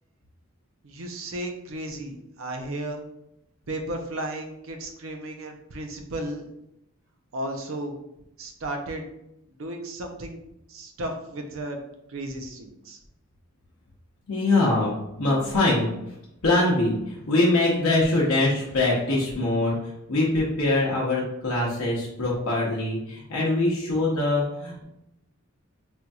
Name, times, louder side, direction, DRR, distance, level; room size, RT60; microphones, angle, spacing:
voice 1, 0.8-3.0 3.7-6.5 7.3-7.9 8.4-9.0 9.6-10.4 10.7-11.8 12.1-13.0, right 1 dB, 65° right, 4 dB, 0.5 m, -34 dB
voice 2, 14.3-15.9 16.4-19.8 20.1-24.8, left 2 dB, 80° left, -5 dB, 0.8 m, -23 dB
4.3 x 2.6 x 2.3 m, 0.85 s
head